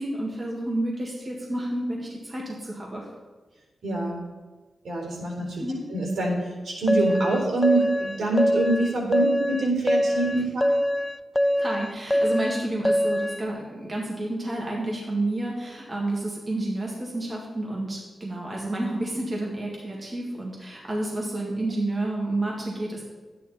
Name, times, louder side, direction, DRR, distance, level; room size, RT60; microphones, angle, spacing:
voice 1, 0.0-3.1 5.6-5.8 11.6-23.0, right 1 dB, 30° right, -3 dB, 2.0 m, -30 dB
voice 2, 3.8-4.2 4.8-5.6 5.9-10.7, right 2 dB, 80° right, -1 dB, 4.0 m, -25 dB
sound 1, 6.9-13.4, equal, 10° left, 0.3 m, -24 dB
12.5 x 9.6 x 4.3 m, 1.3 s
wide cardioid pair, 125°, 0 cm